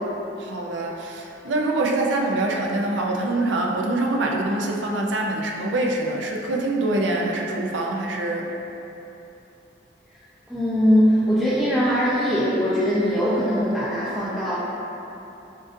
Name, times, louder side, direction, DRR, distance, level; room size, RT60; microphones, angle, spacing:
voice 1, 0.4-8.5, right 2 dB, 75° right, 0 dB, 0.5 m, -24 dB
voice 2, 10.5-14.5, equal, ahead, -12 dB, 0.5 m, -21 dB
7.3 x 2.5 x 2.6 m, 3.0 s
head